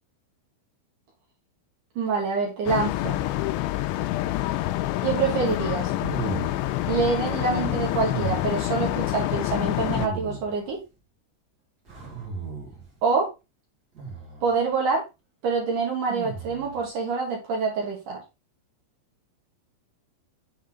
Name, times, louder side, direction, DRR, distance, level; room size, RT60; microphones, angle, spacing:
voice 1, 2.0-3.2 5.0-5.9 6.9-10.8 13.0-13.3 14.4-15.0 15.4-18.2, right 4 dB, 55° right, -1 dB, 2.6 m, -26 dB
sound 1, 2.7-10.1, left 15 dB, 80° left, 2.9 m, -27 dB
sound 2, 5.9-6.9 8.0-8.7 9.9-10.7 11.9-12.9 13.9-14.5 16.1-16.8, right 4 dB, 30° right, 1.8 m, -35 dB
7.3 x 4.3 x 3.9 m, 0.25 s
omnidirectional pair, 5.4 m